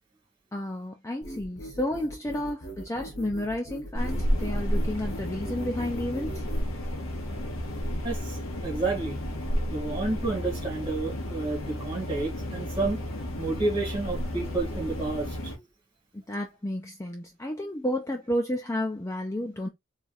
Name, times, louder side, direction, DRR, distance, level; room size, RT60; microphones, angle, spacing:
voice 1, 0.5-6.4 16.1-19.7, left 1 dB, 15° left, 0.4 m, -31 dB
sound 1, 1.2-6.7, right 1 dB, 55° left, 1.1 m, -41 dB
sound 2, 3.9-15.6, equal, 80° left, 1.2 m, -32 dB
voice 2, 8.0-8.4 8.6-9.2 9.7-13.0 13.4-15.5, right 3 dB, 25° right, 2.1 m, -30 dB
4.4 x 3.3 x 2.4 m
head